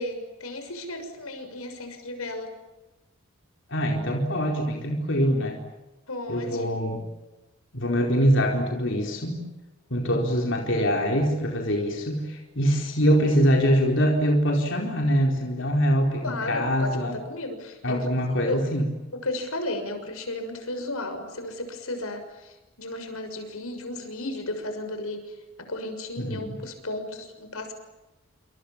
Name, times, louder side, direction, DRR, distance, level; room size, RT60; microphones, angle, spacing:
voice 1, 0.0-2.5 6.1-6.7 16.2-18.1 18.4-18.6 19.2-25.2 25.7-27.7, left 2 dB, 85° left, 7 dB, 6.5 m, -34 dB
voice 2, 3.7-5.6 6.3-7.0 7.7-9.4 9.9-17.2 17.8-18.8 26.2-26.5, equal, 60° left, 1 dB, 4.5 m, -24 dB
28.5 x 27.5 x 7.5 m, 1.1 s
head